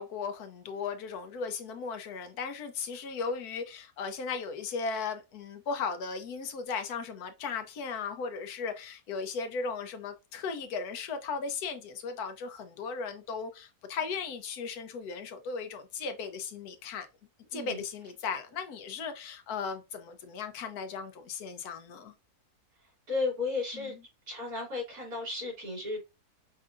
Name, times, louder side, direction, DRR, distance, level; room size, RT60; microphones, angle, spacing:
voice 1, 0.0-17.1 17.5-22.1 23.7-24.0, left 5 dB, 75° left, 1.2 m, -36 dB
voice 2, 17.5-17.8 23.1-23.9 24.3-26.1, left 3 dB, 70° right, 3.0 m, -34 dB
5.4 x 2.7 x 2.4 m
omnidirectional pair, 1.7 m